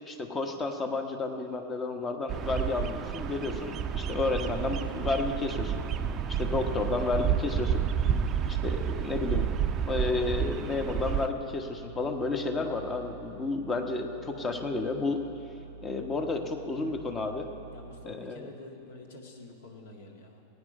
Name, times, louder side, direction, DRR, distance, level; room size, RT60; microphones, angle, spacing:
voice 1, 0.1-5.8 6.3-7.8 8.5-9.5 9.9-15.2 15.8-17.5 18.1-18.4, left 3 dB, 20° left, 5 dB, 1.2 m, -31 dB
Bird vocalization bird call bird song, 2.3-11.3, right 8 dB, 30° right, 0.6 m, -30 dB
sound 1, 9.3-18.1, right 5 dB, 85° right, 0.6 m, -47 dB
voice 2, 17.7-20.4, left 2 dB, 55° left, 2 dB, 1.8 m, -47 dB
18.5 x 9.3 x 5.4 m, 2.7 s
figure-of-eight pair, 90°, 0 cm